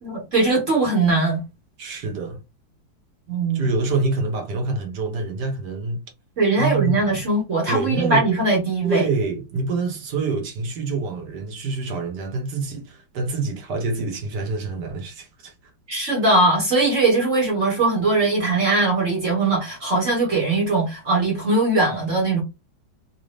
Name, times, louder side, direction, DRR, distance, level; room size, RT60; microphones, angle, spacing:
voice 1, 0.0-1.4 3.3-3.7 6.4-9.0 15.9-22.4, right 2 dB, 45° right, 1.3 m, -20 dB
voice 2, 1.8-2.4 3.5-6.0 6.6-7.2 7.7-8.3 8.8-15.5, right 3 dB, 60° right, 1.6 m, -26 dB
4.0 x 2.5 x 3.3 m
omnidirectional pair, 2.2 m